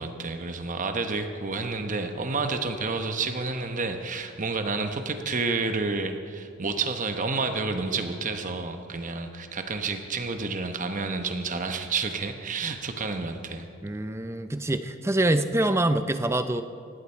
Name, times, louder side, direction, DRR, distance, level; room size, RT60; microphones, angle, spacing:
voice 1, 0.0-13.7, right 4 dB, 35° right, 6 dB, 1.0 m, -30 dB
voice 2, 13.8-16.6, right 1 dB, 10° right, 10 dB, 0.5 m, -25 dB
19.5 x 15.5 x 4.5 m, 2.3 s
head